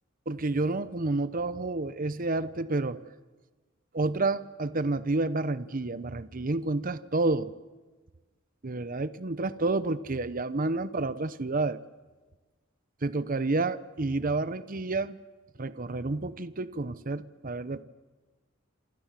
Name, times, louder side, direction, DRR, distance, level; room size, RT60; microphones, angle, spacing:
voice 1, 0.3-3.0 3.9-7.5 8.6-11.8 13.0-15.2 15.6-17.8, right 2 dB, 45° right, 15 dB, 0.9 m, -29 dB
27.5 x 27.0 x 7.6 m, 1.3 s
head